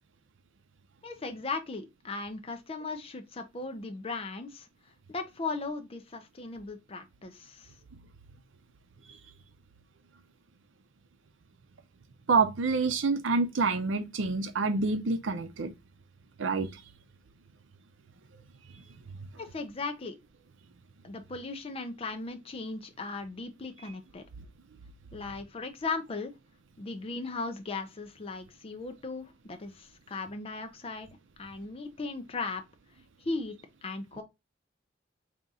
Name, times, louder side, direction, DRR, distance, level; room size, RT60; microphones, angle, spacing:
voice 1, 1.0-4.7 5.1-7.7 19.4-20.2 21.0-24.2 25.1-26.3 26.8-31.1 31.4-32.6 33.2-33.5 33.8-34.2, left 3 dB, 30° left, 0.5 m, -37 dB
voice 2, 12.3-15.7 16.4-16.7, right 4 dB, 75° right, 0.6 m, -27 dB
3.6 x 2.8 x 3.9 m
head